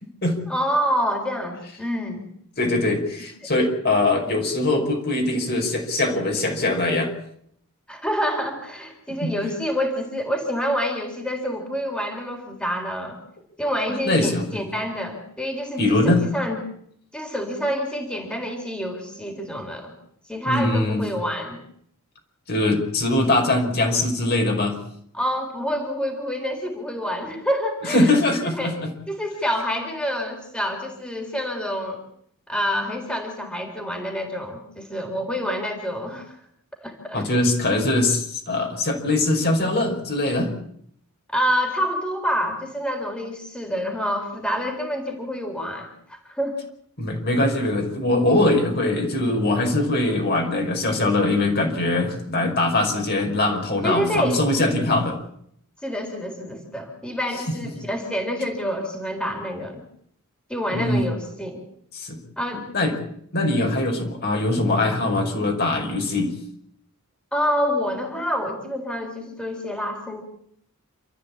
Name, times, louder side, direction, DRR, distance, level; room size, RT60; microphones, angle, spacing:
voice 1, 0.5-2.3 3.4-3.5 7.9-13.2 13.6-16.6 17.1-19.9 20.3-21.6 25.1-28.1 28.4-28.8 29.1-32.0 32.5-36.4 36.8-37.2 41.3-46.6 53.8-54.4 55.8-59.8 60.5-61.6 62.4-62.6 67.3-70.2, equal, 5° left, 2 dB, 3.8 m, -27 dB
voice 2, 2.6-7.1 9.2-9.3 14.0-14.6 15.8-16.2 20.5-21.0 22.5-24.8 27.9-28.8 37.1-40.5 47.0-55.2 60.7-61.1 61.9-62.2 62.5-62.9 63.3-66.3, left 2 dB, 50° left, 2 dB, 5.3 m, -22 dB
28.0 x 14.0 x 8.6 m, 0.69 s
head